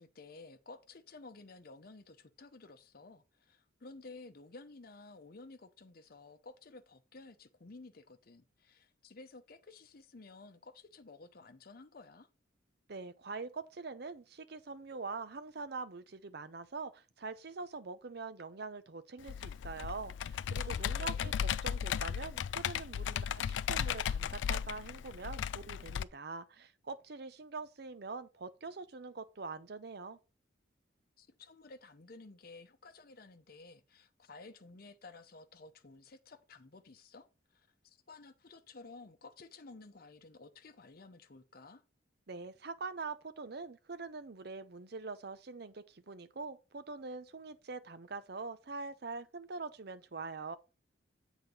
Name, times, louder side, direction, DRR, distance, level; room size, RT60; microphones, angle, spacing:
voice 1, 0.0-12.3 20.6-21.4 31.2-41.8, left 3 dB, 50° left, 0.7 m, -54 dB
voice 2, 12.9-21.3 21.6-30.2 42.3-50.6, right 4 dB, 55° right, 0.7 m, -44 dB
Computer keyboard, 19.3-26.0, left 8 dB, 75° left, 0.3 m, -36 dB
7.9 x 4.1 x 5.3 m
head